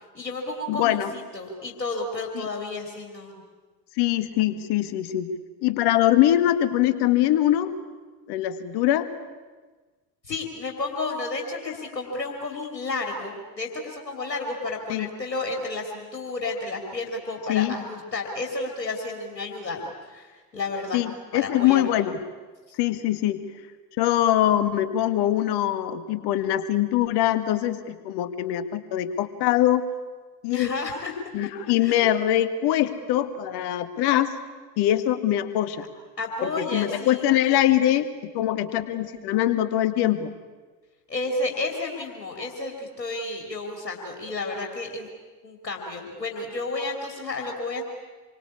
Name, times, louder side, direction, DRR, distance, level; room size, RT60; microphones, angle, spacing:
voice 1, 0.1-3.4 10.2-21.0 21.3-21.8 30.5-31.1 31.8-32.0 36.2-37.2 41.1-45.1 45.4-47.8, left 2 dB, 80° left, 1 dB, 3.1 m, -31 dB
voice 2, 0.7-1.1 2.3-2.5 4.0-5.3 5.6-7.7 8.3-9.1 14.9-15.1 17.5-17.7 20.9-22.2 22.8-23.4 24.0-29.8 30.4-30.7 31.3-34.3 34.8-35.9 36.4-38.1 38.3-40.3, left 12 dB, 55° left, 12 dB, 2.0 m, -23 dB
27.5 x 24.0 x 8.5 m, 1.3 s
figure-of-eight pair, 60°, 48 cm